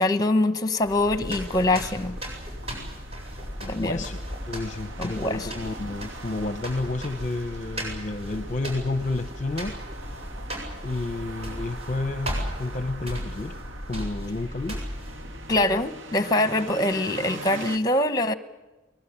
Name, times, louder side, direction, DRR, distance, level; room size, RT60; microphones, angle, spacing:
voice 1, 0.0-2.2 3.7-4.0 5.0-5.5 15.5-18.3, left 1 dB, 20° left, 1.2 m, -24 dB
sound 1, 0.8-15.9, equal, 30° right, 7.6 m, -36 dB
sound 2, 0.9-17.8, right 2 dB, 75° right, 1.6 m, -43 dB
voice 2, 3.6-4.2 4.5-9.8 10.8-13.6 13.9-14.8, left 2 dB, 40° left, 0.7 m, -31 dB
23.5 x 21.0 x 8.5 m
head